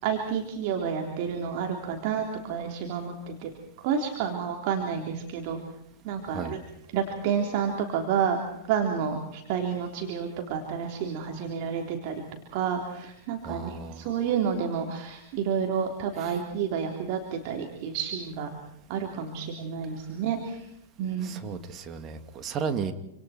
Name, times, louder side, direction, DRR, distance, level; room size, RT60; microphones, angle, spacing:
voice 1, 0.0-3.5 3.8-5.6 6.0-6.6 6.9-8.4 8.7-12.2 12.5-18.5 18.9-20.7 21.0-21.4, right 7 dB, 50° right, 2 dB, 3.6 m, -30 dB
voice 2, 13.4-14.0 16.2-16.3 21.2-22.9, right 6 dB, 30° right, 6 dB, 2.6 m, -34 dB
28.5 x 27.0 x 4.5 m, 0.81 s
figure-of-eight pair, 100°, 0 cm